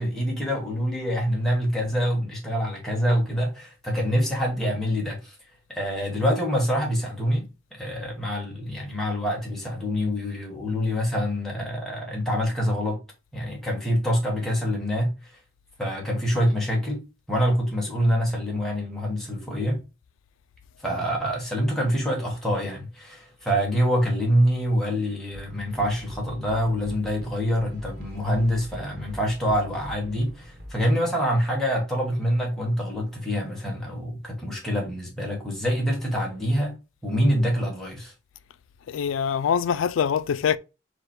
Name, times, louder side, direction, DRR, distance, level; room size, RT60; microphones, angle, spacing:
voice 1, 0.0-5.3 5.7-13.0 13.3-15.3 15.8-17.0 17.3-19.8 20.8-36.7 37.0-38.1, equal, ahead, 1.4 m, -25 dB
sound 1, 25.3-30.9, equal, 50° right, 1.0 m, -43 dB
voice 2, 38.9-40.6, left 7 dB, 85° left, 0.3 m, -24 dB
4.9 x 2.2 x 4.4 m
head